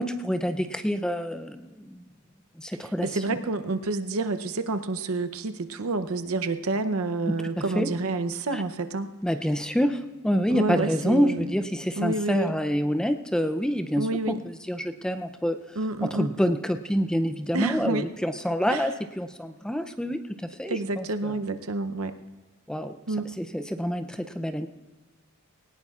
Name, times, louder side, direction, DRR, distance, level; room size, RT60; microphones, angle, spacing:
voice 1, 0.0-2.0 2.6-3.2 7.3-7.9 8.5-8.6 9.2-15.6 16.0-20.2 20.6-21.4 22.7-23.0 23.4-24.7, equal, 5° left, 8 dB, 0.4 m, -27 dB
voice 2, 3.0-9.1 10.5-11.5 12.0-12.5 14.0-14.4 15.8-16.3 17.5-18.1 18.7-18.8 20.7-22.2 23.1-23.3, right 3 dB, 65° right, 9 dB, 0.7 m, -29 dB
20.5 x 18.5 x 2.4 m, 1.2 s
head